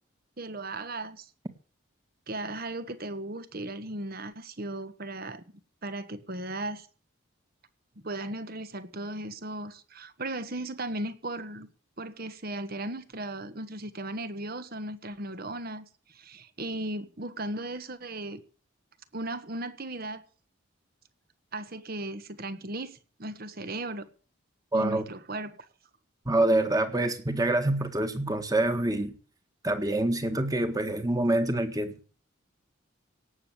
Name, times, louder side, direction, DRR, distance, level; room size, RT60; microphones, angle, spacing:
voice 1, 0.4-1.3 2.3-5.4 5.8-6.9 8.0-11.7 12.0-18.4 19.1-20.2 21.5-24.1 24.7-25.7, right 2 dB, 50° right, 1.4 m, -36 dB
voice 2, 24.7-25.1 26.3-29.1 29.6-31.9, right 1 dB, 20° right, 1.7 m, -26 dB
17.5 x 7.3 x 8.1 m
head